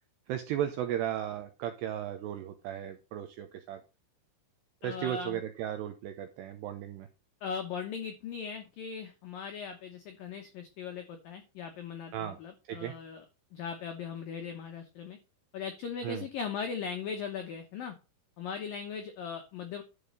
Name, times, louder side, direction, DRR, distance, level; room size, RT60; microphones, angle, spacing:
voice 1, 0.3-3.8 4.8-7.1 12.1-12.4 12.7-12.9 16.0-16.2, right 11 dB, 85° right, 7 dB, 2.4 m, -35 dB
voice 2, 4.8-5.4 7.4-13.3 13.5-15.2 15.5-18.0 18.4-19.8, left 6 dB, 90° left, 5 dB, 2.0 m, -39 dB
11.5 x 5.1 x 5.4 m, 0.30 s
omnidirectional pair, 5.8 m